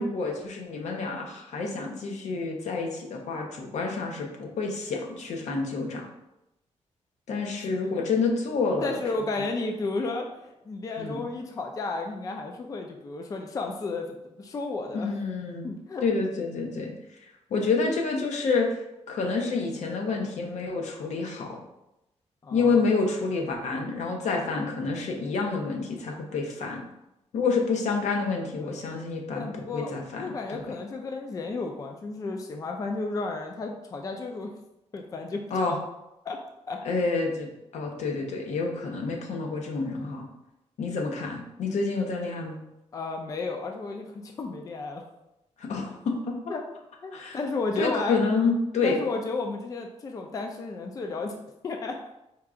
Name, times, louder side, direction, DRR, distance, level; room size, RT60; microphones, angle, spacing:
voice 1, 0.0-6.1 7.3-9.0 11.0-11.3 14.9-15.7 16.0-16.9 17.5-18.8 19.1-21.6 22.5-26.8 27.3-29.5 29.7-30.6 35.5-35.7 36.8-40.3 40.8-42.6 45.6-46.3 47.1-47.4 47.8-49.0, left 4 dB, 80° left, 1 dB, 0.8 m, -28 dB
voice 2, 8.8-15.1 15.6-16.2 22.4-22.9 28.6-28.8 29.3-34.5 34.9-35.5 36.2-36.4 36.7-36.8 42.9-45.1 46.5-46.6 47.0-48.2 48.8-51.4 51.6-51.9, left 3 dB, 30° left, 3 dB, 0.3 m, -33 dB
4.5 x 2.4 x 3.7 m, 0.90 s
wide cardioid pair, 155°, 12 cm